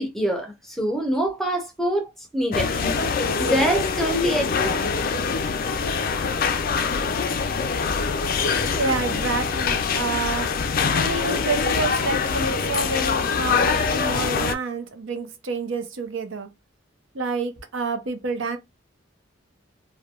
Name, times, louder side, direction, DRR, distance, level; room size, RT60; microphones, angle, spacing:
voice 1, 0.0-2.1 2.3-4.9, equal, ahead, 0.7 m, -25 dB
sound 1, 2.5-14.5, left 5 dB, 45° left, 0.3 m, -24 dB
voice 2, 8.7-10.5 10.9-16.5 17.1-18.6, right 3 dB, 65° right, 0.6 m, -28 dB
3.2 x 2.2 x 2.3 m
head